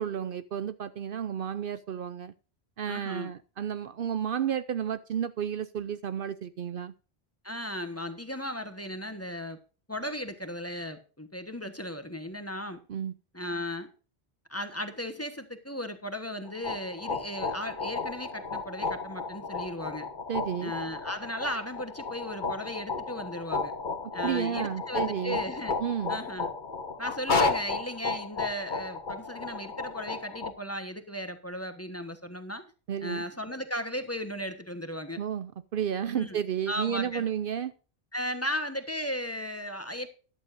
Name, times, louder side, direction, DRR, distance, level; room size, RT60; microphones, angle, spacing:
voice 1, 0.0-2.3 2.8-6.9 12.9-13.1 20.3-20.7 24.2-25.4 25.8-26.2 32.9-33.2 35.2-37.7, right 9 dB, 60° right, 13 dB, 0.8 m, -32 dB
voice 2, 2.9-3.3 7.4-9.6 9.9-12.8 13.3-13.9 14.5-20.1 20.6-23.7 24.1-25.7 26.1-26.5 27.0-32.6 33.0-35.2 36.1-36.4 36.7-37.2 38.1-40.1, equal, 15° left, 8 dB, 1.2 m, -36 dB
sound 1, 16.5-30.5, left 4 dB, 50° left, 1.4 m, -33 dB
13.0 x 11.5 x 2.6 m, 0.36 s
omnidirectional pair, 1.1 m